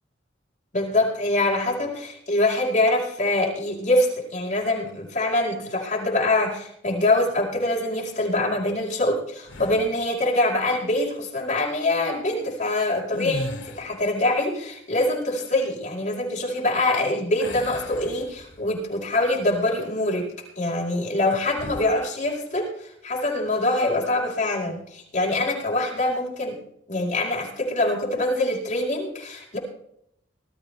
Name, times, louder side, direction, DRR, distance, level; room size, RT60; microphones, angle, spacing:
voice 1, 0.7-20.3 20.6-26.6 26.9-29.6, left 2 dB, 40° left, -3 dB, 4.8 m, -24 dB
sound 1, 9.5-10.1 13.0-14.1 17.4-18.8 19.3-19.5 21.5-22.0, left 1 dB, 85° left, 1.3 m, -36 dB
19.5 x 13.0 x 3.4 m, 0.72 s
head